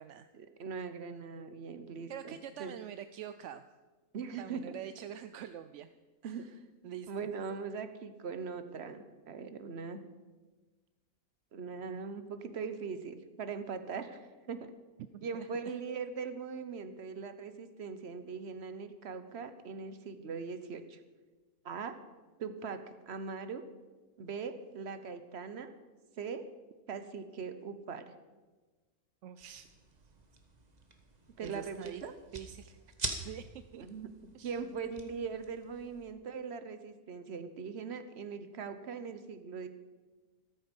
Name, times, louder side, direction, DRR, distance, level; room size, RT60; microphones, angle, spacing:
voice 1, 0.3-2.7 4.1-4.7 6.2-6.4 7.1-10.0 11.5-14.7 15.2-21.0 21.6-21.9 22.4-23.6 24.2-25.7 26.2-26.5 26.9-28.1 31.4-32.1 33.7-34.1 34.4-39.7, right 5 dB, 50° right, 10 dB, 1.1 m, -41 dB
voice 2, 2.1-3.6 4.4-5.9 6.2-6.6 6.8-7.3 15.1-15.5 29.2-29.7 31.4-32.0 32.3-32.8 33.2-33.8 34.3-34.6, right 10 dB, 65° right, 11 dB, 0.8 m, -45 dB
sound 1, 29.4-36.1, right 3 dB, 30° right, 1.3 m, -45 dB
13.5 x 13.5 x 5.3 m, 1.3 s
omnidirectional pair, 1.6 m